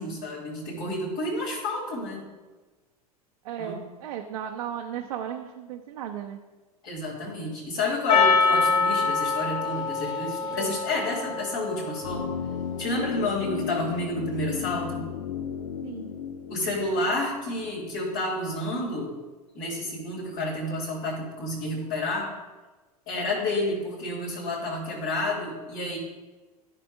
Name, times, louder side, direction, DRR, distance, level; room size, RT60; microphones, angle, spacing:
voice 1, 0.0-2.3 3.6-3.8 6.8-12.3 12.8-15.0 16.5-19.1 19.5-22.3 23.1-26.0, left 2 dB, 55° left, -7 dB, 3.1 m, -30 dB
voice 2, 3.4-6.4 10.6-10.8 15.8-16.1, right 9 dB, 65° right, 2 dB, 0.7 m, -35 dB
Percussion, 8.1-12.6, left 4 dB, 25° left, 2.3 m, -25 dB
sound 1, 12.0-18.0 18.3-18.4, left 8 dB, 75° left, 0.5 m, -34 dB
13.5 x 6.7 x 2.6 m, 1.2 s
figure-of-eight pair, 80°, 19 cm